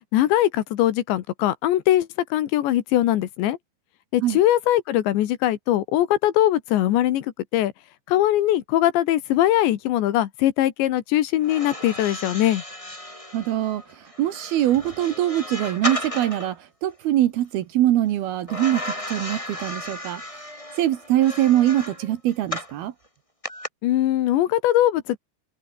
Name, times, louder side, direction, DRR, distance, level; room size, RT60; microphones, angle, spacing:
voice 1, 0.1-3.6 4.1-7.7 8.1-12.6 23.8-25.2, left 13 dB, 75° left, 3.7 m, -21 dB
sound 1, 11.4-16.5 18.5-22.8 23.4-23.7, left 1 dB, 5° left, 4.8 m, -34 dB
voice 2, 13.3-13.8 14.2-20.2 20.8-22.9, right 13 dB, 70° right, 2.8 m, -23 dB
omnidirectional pair, 5.2 m